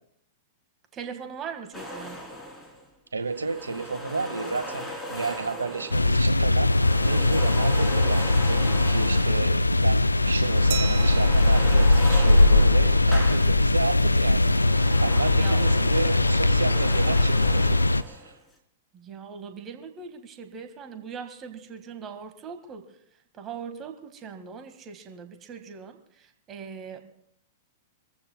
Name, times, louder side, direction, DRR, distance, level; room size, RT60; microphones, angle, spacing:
voice 1, 0.9-2.2 15.3-15.7 18.9-22.8 23.3-27.2, right 6 dB, 25° right, 7 dB, 1.9 m, -40 dB
sound 1, 1.7-2.8 3.2-6.2 6.5-9.6 10.0-13.8 14.1-18.4, equal, 10° left, 3.6 m, -38 dB
voice 2, 3.1-18.4, right 4 dB, 80° right, 7 dB, 1.7 m, -32 dB
sound 2, 5.9-18.0, left 2 dB, 90° left, 0.4 m, -20 dB
Glass, 10.7-13.2, right 13 dB, 55° right, 0.8 m, -38 dB
26.0 x 14.5 x 2.3 m, 0.73 s
figure-of-eight pair, 105°, 0 cm